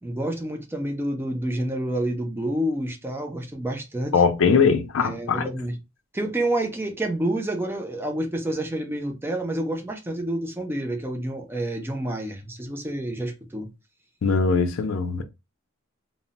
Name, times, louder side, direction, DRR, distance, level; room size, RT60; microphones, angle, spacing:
voice 1, 0.0-4.1 5.0-5.7 6.1-13.7, right 1 dB, 10° right, 0.4 m, -28 dB
voice 2, 4.1-5.5 14.2-15.2, left 5 dB, 65° left, 0.4 m, -21 dB
2.1 x 2.0 x 3.7 m
head